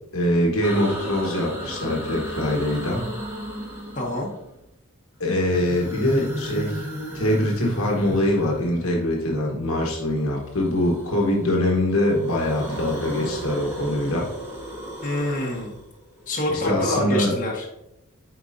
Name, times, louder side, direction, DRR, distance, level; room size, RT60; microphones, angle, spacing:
voice 1, 0.1-3.1 5.2-6.9 7.1-14.3 16.5-17.3, left 1 dB, 65° left, -1 dB, 1.2 m, -23 dB
sound 1, 0.6-4.6 5.3-9.0 10.4-11.6 11.9-16.9, equal, 10° right, 1.2 m, -35 dB
voice 2, 3.9-4.3 15.0-15.8 16.3-17.6, left 1 dB, 35° left, -3 dB, 1.4 m, -26 dB
9.1 x 4.3 x 2.6 m, 0.88 s
head